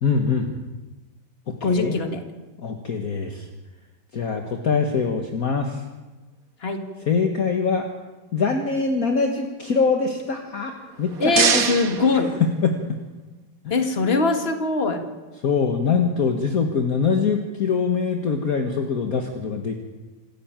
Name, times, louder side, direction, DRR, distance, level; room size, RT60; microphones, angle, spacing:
voice 1, 0.0-0.5 1.5-2.0 2.6-3.5 4.1-5.8 7.1-7.9 8.3-11.7 12.6-13.0 15.4-19.7, left 5 dB, 50° left, 4 dB, 1.9 m, -23 dB
voice 2, 1.6-2.2 6.6-6.8 11.2-12.4 13.7-15.0, left 3 dB, 30° left, 6 dB, 2.3 m, -22 dB
sound 1, 10.8-13.0, right 6 dB, 50° right, 1.7 m, -25 dB
27.5 x 13.0 x 9.0 m, 1.2 s
omnidirectional pair, 2.1 m